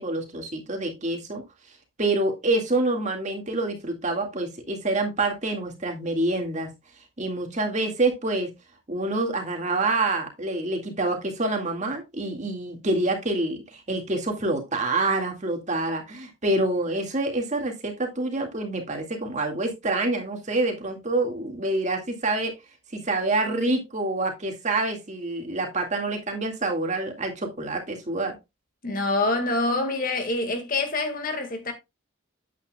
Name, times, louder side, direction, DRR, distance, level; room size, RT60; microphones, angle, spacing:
voice 1, 0.0-1.4 2.0-6.7 7.2-8.5 8.9-22.5 22.9-28.3, right 2 dB, 35° right, 2.0 m, -27 dB
voice 2, 28.8-31.7, left 2 dB, 40° left, 1.8 m, -26 dB
8.9 x 8.4 x 2.3 m
head